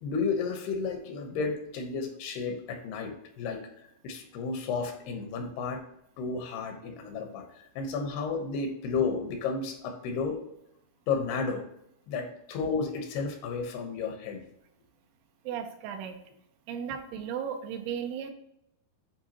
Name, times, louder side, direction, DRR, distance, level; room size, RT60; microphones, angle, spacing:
voice 1, 0.0-3.6 4.0-5.8 6.2-10.4 11.1-11.6 12.1-14.4, left 4 dB, 75° left, 4 dB, 3.0 m, -32 dB
voice 2, 15.4-16.2 16.7-18.3, right 8 dB, 80° right, 6 dB, 2.6 m, -35 dB
10.5 x 4.5 x 2.9 m, 0.77 s
omnidirectional pair, 4.8 m